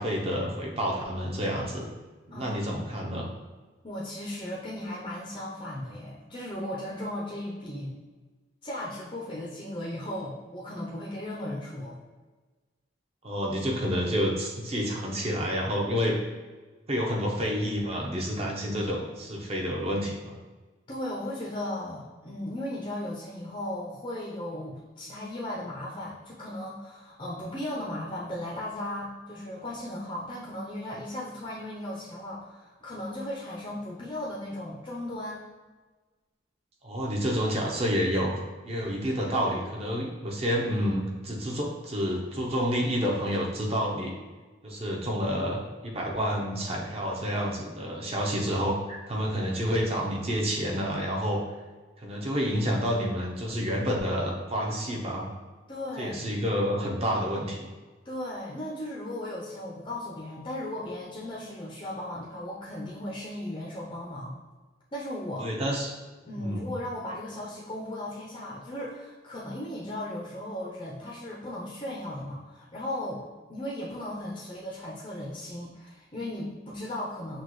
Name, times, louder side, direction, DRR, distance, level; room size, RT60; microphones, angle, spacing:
voice 1, 0.0-1.9 2.3-3.3 13.2-16.2 16.9-20.4 36.8-44.1 44.6-51.4 52.0-55.3 56.0-57.6 65.4-65.9 66.4-66.6, equal, 30° right, -1 dB, 0.7 m, -29 dB
voice 2, 2.3-3.1 3.8-7.9 8.6-12.0 20.9-35.5 55.7-56.3 58.0-64.4 64.9-65.5 66.2-73.2 73.5-77.4, left 1 dB, 30° left, -5 dB, 0.6 m, -36 dB
6.3 x 2.4 x 3.0 m, 1.3 s
head